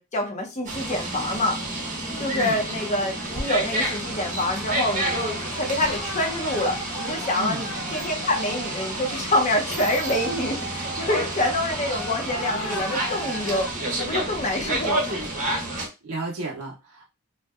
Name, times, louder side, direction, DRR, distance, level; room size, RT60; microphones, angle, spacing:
voice 1, 0.0-1.6 2.2-13.7 14.0-15.2, left 1 dB, 35° left, 2 dB, 0.6 m, -26 dB
sound 1, 0.7-15.9, right 1 dB, 35° right, 0.6 m, -30 dB
sound 2, 3.4-13.7, equal, 85° left, 0.6 m, -37 dB
voice 2, 16.0-17.1, right 2 dB, 80° right, -2 dB, 0.5 m, -32 dB
2.6 x 2.1 x 2.3 m, 0.26 s
head